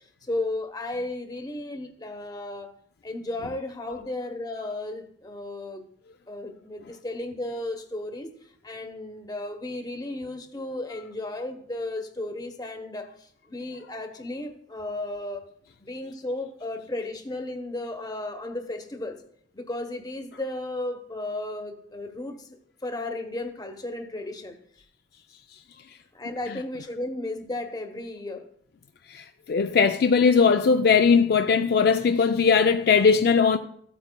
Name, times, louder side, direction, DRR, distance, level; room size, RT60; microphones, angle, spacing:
voice 1, 0.3-2.7 3.0-5.8 6.3-8.3 8.6-13.1 13.5-15.4 15.8-19.2 19.5-22.5 22.8-24.5 26.1-28.5, left 2 dB, 20° left, 0.9 m, -34 dB
voice 2, 29.5-33.6, left 5 dB, 55° left, 0.4 m, -19 dB
14.5 x 8.4 x 2.2 m
head